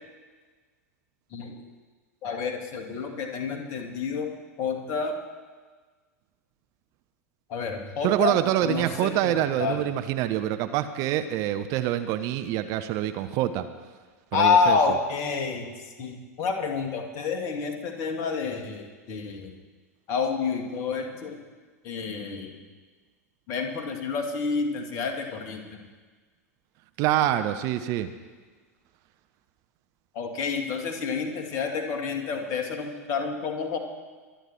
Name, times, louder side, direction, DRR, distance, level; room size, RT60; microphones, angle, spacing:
voice 1, 1.3-1.6 2.2-4.3 4.6-5.1 7.5-8.4 8.6-9.8 14.3-15.7 16.0-19.5 20.1-21.4 21.8-22.5 23.5-25.8 30.1-33.8, left 5 dB, 40° left, 4 dB, 2.2 m, -28 dB
voice 2, 8.0-13.7 14.3-14.8 27.0-28.1, right 12 dB, 40° right, 9 dB, 0.8 m, -26 dB
24.0 x 10.0 x 4.6 m, 1.4 s
figure-of-eight pair, 90°, 9 cm